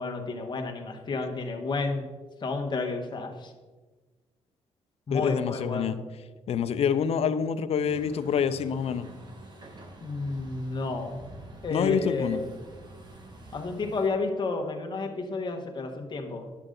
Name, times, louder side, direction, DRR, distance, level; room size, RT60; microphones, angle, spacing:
voice 1, 0.0-2.1 2.4-3.5 5.1-5.9 10.0-11.2 11.6-12.5 13.5-16.5, left 3 dB, 40° left, 2 dB, 1.3 m, -31 dB
voice 2, 5.1-6.0 6.5-9.1 11.7-12.4, left 7 dB, 60° left, 12 dB, 0.5 m, -26 dB
Truck, 7.9-14.1, right 2 dB, 40° right, 1.5 m, -47 dB
9.9 x 6.6 x 3.8 m, 1.3 s
cardioid pair, 95°, 12 cm